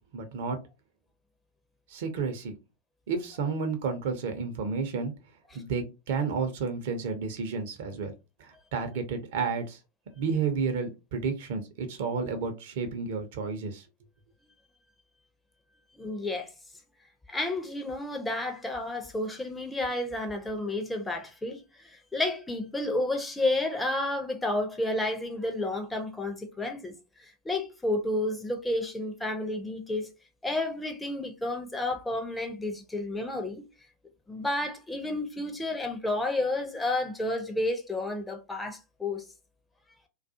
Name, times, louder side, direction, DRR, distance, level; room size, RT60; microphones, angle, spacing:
voice 1, 0.1-0.6 1.9-2.5 3.1-5.1 5.5-8.1 8.4-9.8 10.2-13.8, right 5 dB, 55° right, 0.6 m, -31 dB
voice 2, 15.9-16.5 17.3-21.6 21.9-26.9 27.2-30.1 30.4-33.7 34.3-39.2, left 2 dB, 10° left, 0.5 m, -31 dB
2.3 x 2.3 x 2.6 m
figure-of-eight pair, 90°, 0 cm